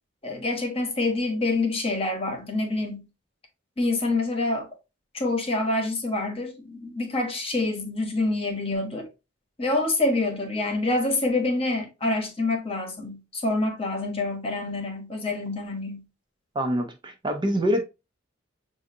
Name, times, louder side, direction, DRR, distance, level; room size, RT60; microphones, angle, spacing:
voice 1, 0.2-3.0 3.8-4.7 5.1-9.1 9.6-16.0, left 2 dB, 30° left, 1.0 m, -26 dB
voice 2, 16.5-17.8, equal, 25° right, 0.5 m, -25 dB
6.2 x 2.6 x 2.5 m
head